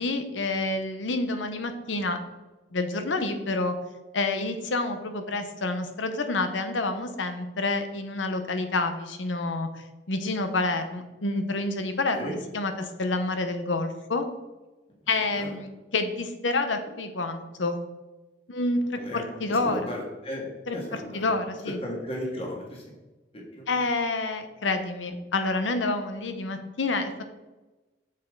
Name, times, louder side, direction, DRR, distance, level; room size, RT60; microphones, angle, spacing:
voice 1, 0.0-2.2 2.7-3.7 4.1-9.7 10.1-14.3 15.1-17.8 18.5-19.9 20.7-21.8 23.7-27.2, left 2 dB, 90° left, 8 dB, 0.9 m, -28 dB
voice 2, 19.5-20.5 20.7-21.3 21.8-22.8 23.3-23.7, equal, 30° left, -2 dB, 1.8 m, -35 dB
7.4 x 6.8 x 3.8 m, 1.1 s
head